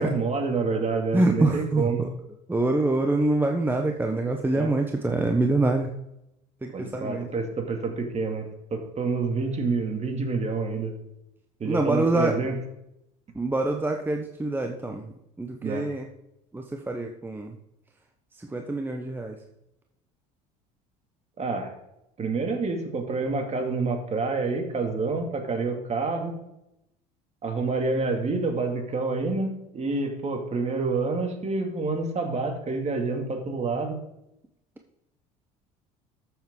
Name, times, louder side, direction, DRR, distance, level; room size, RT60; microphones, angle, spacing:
voice 1, 0.0-2.1 4.5-4.7 6.7-11.0 11.6-12.6 15.6-15.9 21.4-21.7 22.2-26.4 27.4-34.0, right 4 dB, 35° right, 4 dB, 2.5 m, -28 dB
voice 2, 1.1-2.1 2.5-5.9 6.6-7.3 11.6-12.5 13.3-15.1 15.4-16.1 16.5-17.5 18.4-19.4, right 2 dB, 10° right, 3 dB, 1.0 m, -25 dB
13.0 x 7.2 x 3.8 m, 0.84 s
hypercardioid pair, 80°, 19 cm